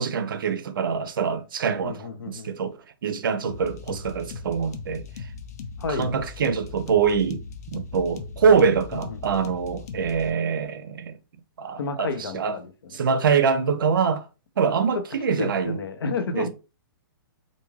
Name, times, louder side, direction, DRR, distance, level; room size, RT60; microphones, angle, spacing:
voice 1, 0.0-2.8 3.0-5.0 5.9-7.4 7.7-11.2 11.6-12.1 12.3-12.6 12.9-14.2 14.6-15.8 16.3-16.5, right 6 dB, 65° right, 0.5 m, -24 dB
voice 2, 1.8-2.6 5.8-6.1 8.9-9.4 11.8-13.0 15.4-16.5, left 4 dB, 85° left, 0.7 m, -31 dB
sound 1, 3.4-10.3, left 5 dB, 45° left, 0.4 m, -38 dB
3.1 x 2.6 x 2.3 m
hypercardioid pair, 180°, 12 cm